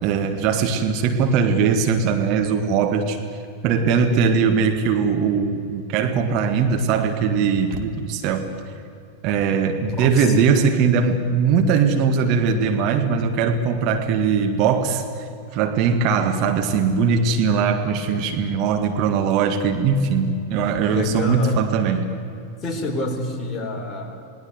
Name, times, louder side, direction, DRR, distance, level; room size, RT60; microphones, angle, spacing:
voice 1, 0.0-3.2 3.6-8.5 9.2-15.0 15.5-22.0, right 6 dB, 40° right, 5 dB, 1.9 m, -20 dB
voice 2, 10.0-10.4 20.9-21.6 22.6-24.3, left 2 dB, 20° left, 3 dB, 4.0 m, -27 dB
28.0 x 19.5 x 8.1 m, 2.5 s
figure-of-eight pair, 90°, 0 cm